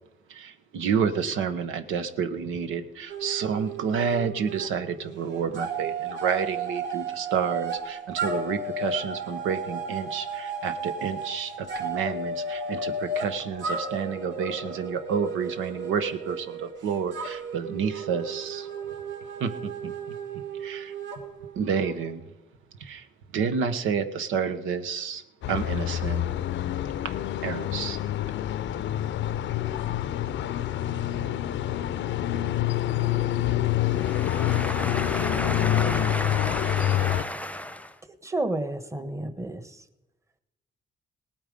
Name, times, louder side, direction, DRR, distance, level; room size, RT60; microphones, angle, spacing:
voice 1, 0.3-18.7 19.4-20.2 20.6-20.9 21.5-22.2 22.8-23.1 23.3-25.2 25.5-26.4 27.0-27.1 27.4-28.0, right 6 dB, 90° right, 1.1 m, -29 dB
sound 1, 3.1-4.7 5.0-22.1, right 3 dB, 70° right, 2.6 m, -34 dB
sound 2, 25.4-37.2, left 12 dB, 70° left, 0.6 m, -27 dB
voice 2, 33.9-37.9, left 1 dB, 5° left, 0.9 m, -32 dB
voice 3, 38.2-39.6, right 2 dB, 15° right, 1.2 m, -30 dB
18.5 x 8.9 x 5.2 m
cardioid pair, 90°, 20 cm